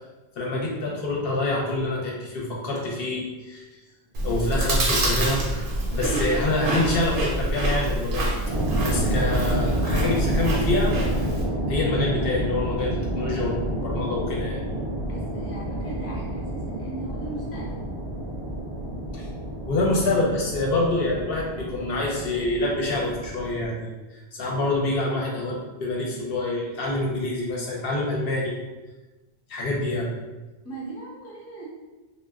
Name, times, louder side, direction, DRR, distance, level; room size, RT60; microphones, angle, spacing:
voice 1, 0.4-3.6 4.2-8.3 8.8-10.9 11.7-14.6 19.1-19.3 19.7-28.5 29.5-30.1, left 2 dB, 60° left, -3 dB, 0.7 m, -26 dB
Chewing mastication, 4.1-11.4, right 1 dB, 65° right, 0.7 m, -26 dB
sound 1, 8.5-23.7, right 1 dB, 50° right, 0.4 m, -29 dB
voice 2, 15.1-17.8 30.6-31.7, right 2 dB, 20° left, -5 dB, 0.5 m, -38 dB
2.0 x 2.0 x 3.4 m, 1.1 s
omnidirectional pair, 1.2 m